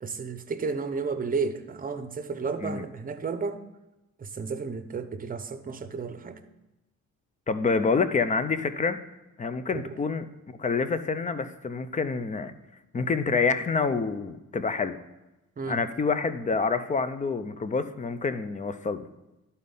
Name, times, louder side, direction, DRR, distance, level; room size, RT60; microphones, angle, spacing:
voice 1, 0.0-3.6 4.2-6.4 9.7-9.9 15.6-15.8, right 5 dB, 30° right, 10 dB, 0.8 m, -32 dB
voice 2, 7.5-9.0 9.4-10.3 10.6-12.5 12.9-15.0 15.7-19.0, left 4 dB, 25° left, 11 dB, 0.6 m, -27 dB
11.5 x 4.3 x 5.4 m, 0.98 s
cardioid pair, 90°, 30 cm